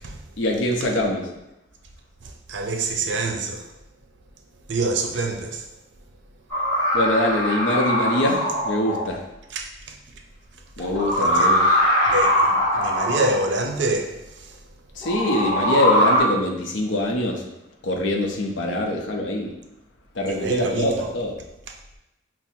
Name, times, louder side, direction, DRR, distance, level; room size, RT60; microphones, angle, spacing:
voice 1, 0.4-1.3 6.9-9.2 10.8-11.6 15.0-17.5 17.8-19.5 20.2-21.3, left 1 dB, 85° left, 0.6 m, -24 dB
voice 2, 2.2-3.6 4.7-5.7 9.5-10.0 10.8-10.9 11.1-11.5 12.0-14.6 20.3-21.1, right 2 dB, 70° right, 0.5 m, -27 dB
sound 1, 6.5-9.1 10.8-13.4 15.0-16.2, equal, 15° left, 1.5 m, -21 dB
5.6 x 2.0 x 2.6 m
head